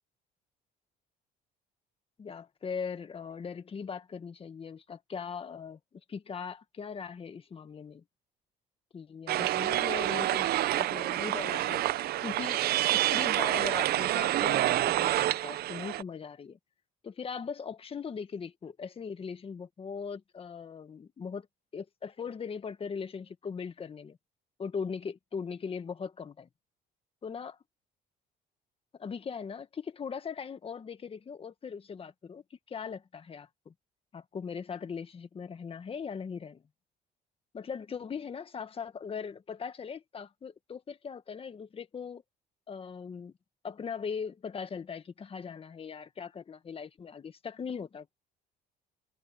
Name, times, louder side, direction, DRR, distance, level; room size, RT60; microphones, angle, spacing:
voice 1, 2.2-8.0 8.9-11.8 12.2-12.6 12.9-16.6 17.0-21.5 21.7-24.2 24.6-26.5 27.2-27.6 28.9-33.7 34.1-36.6 37.5-42.2 42.7-43.3 43.6-48.1, left 6 dB, 35° left, 1.8 m, -40 dB
sound 1, 9.3-16.0, right 14 dB, 65° right, 0.7 m, -28 dB
cardioid pair, 110°, 17 cm